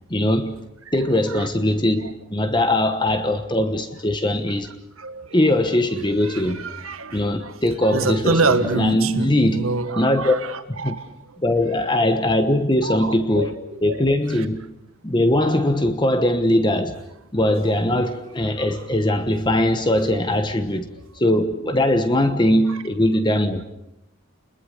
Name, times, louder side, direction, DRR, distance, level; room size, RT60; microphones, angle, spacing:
voice 1, 0.1-0.5 0.9-4.7 5.3-6.6 7.1-9.7 10.0-10.4 10.7-10.9 11.4-14.6 15.0-17.0 17.3-20.9 21.2-23.6, left 1 dB, 20° left, 1.2 m, -21 dB
voice 2, 5.0-5.3 6.3-7.5 7.9-11.1 12.8-13.5 13.9-14.0, right 3 dB, 80° right, 1.7 m, -26 dB
29.5 x 21.5 x 6.6 m
head